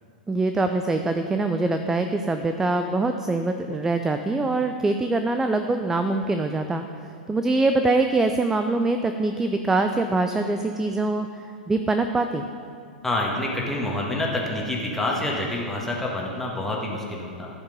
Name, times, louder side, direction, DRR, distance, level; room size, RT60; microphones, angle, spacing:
voice 1, 0.3-6.8 7.3-12.5, right 2 dB, 10° right, 7 dB, 0.4 m, -24 dB
voice 2, 13.0-17.5, left 1 dB, 5° left, -2 dB, 1.7 m, -27 dB
14.0 x 5.2 x 5.2 m, 2.3 s
figure-of-eight pair, 95°, 5 cm